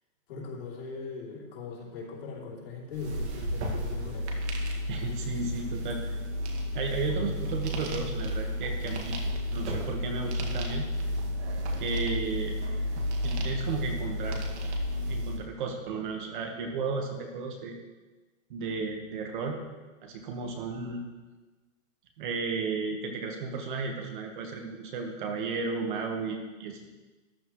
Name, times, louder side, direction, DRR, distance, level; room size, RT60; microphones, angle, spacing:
voice 1, 0.3-4.3, left 4 dB, 45° left, -3 dB, 3.0 m, -40 dB
sound 1, 2.9-15.4, left 1 dB, 55° right, 2.1 m, -32 dB
voice 2, 4.9-6.0 6.7-9.2 9.5-10.9 11.8-12.6 13.2-14.4 15.1-17.7 18.5-19.6 20.0-21.0 22.2-26.9, right 4 dB, 40° right, 3 dB, 1.4 m, -34 dB
sound 2, 7.6-12.4, right 3 dB, 75° right, 3.7 m, -51 dB
13.5 x 10.5 x 3.2 m, 1.2 s
hypercardioid pair, 170°, 39 cm